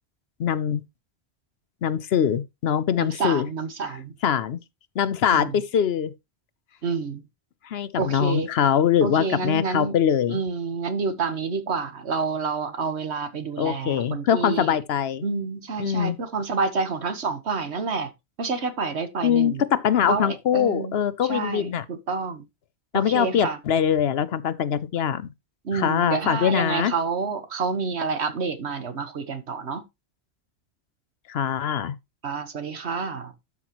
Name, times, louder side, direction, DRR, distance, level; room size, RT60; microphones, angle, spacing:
voice 1, 0.4-0.8 1.8-3.5 4.2-4.6 5.0-6.1 7.6-10.4 13.6-15.2 15.8-16.2 19.2-21.8 22.9-25.3 25.7-26.9 31.3-31.9, left 8 dB, 70° left, 0.9 m, -23 dB
voice 2, 3.0-4.1 5.3-5.6 6.8-7.2 8.0-8.5 9.0-10.0 10.3-14.8 15.2-18.1 18.4-19.6 20.1-21.0 21.2-22.4 22.9-23.6 25.6-29.8 32.2-33.3, right 4 dB, 75° right, 1.5 m, -28 dB
12.0 x 6.0 x 3.0 m
omnidirectional pair, 1.1 m